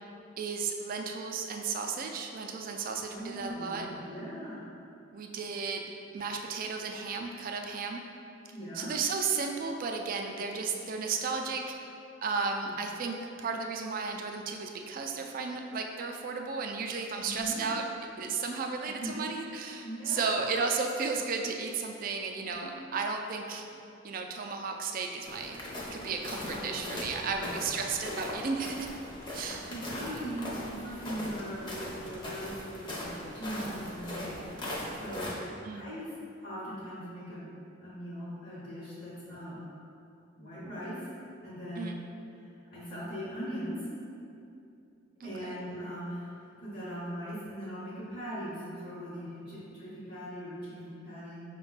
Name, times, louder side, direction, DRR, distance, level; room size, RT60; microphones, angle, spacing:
voice 1, 0.4-3.9 5.1-8.0 8.7-11.6 12.2-17.8 18.2-23.7 24.0-25.6 25.9-28.9 29.3-29.7 35.6-35.9 41.8-42.0 45.2-45.6, right 5 dB, 45° right, 3 dB, 0.3 m, -34 dB
voice 2, 3.0-4.6 8.5-8.9 12.6-12.7 17.2-17.6 19.0-19.2 19.8-20.5 22.6-22.7 26.5-26.8 27.2-27.6 29.3-34.4 35.0-35.3 35.7-36.1 36.4-37.5 37.8-39.6 40.4-41.0 41.4-41.9 42.7-43.8 45.2-51.4, equal, 55° left, -9 dB, 1.0 m, -40 dB
sound 1, 25.2-35.3, left 1 dB, 25° left, 0.7 m, -39 dB
5.1 x 2.2 x 3.9 m, 2.6 s
head